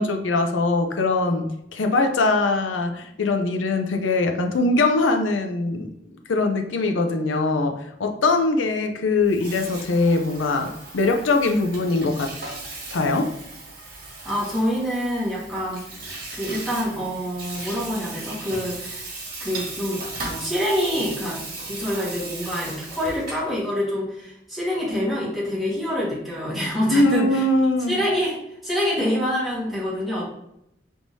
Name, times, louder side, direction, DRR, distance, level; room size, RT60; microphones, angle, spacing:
voice 1, 0.0-5.9 6.3-12.3 12.9-13.3 26.9-28.0, left 2 dB, 85° left, 5 dB, 0.6 m, -22 dB
Water tap faucet / Sink (filling or washing), 9.2-23.5, right 2 dB, 50° right, 1.5 m, -37 dB
voice 2, 14.2-15.8 16.3-19.1 19.4-21.4 21.7-27.5 27.9-30.3, equal, ahead, -8 dB, 1.5 m, -26 dB
4.7 x 3.5 x 2.7 m, 0.80 s
head